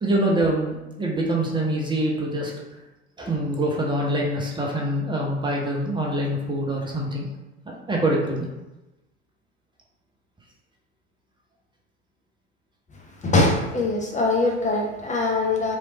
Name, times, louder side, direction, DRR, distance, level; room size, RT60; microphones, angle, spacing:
voice 1, 0.0-2.5 3.2-7.3 7.7-8.5, right 1 dB, 15° right, -2 dB, 0.9 m, -25 dB
voice 2, 13.2-15.8, left 2 dB, 20° left, 0 dB, 0.8 m, -22 dB
3.7 x 3.3 x 4.1 m, 1.0 s
figure-of-eight pair, 70°, 34 cm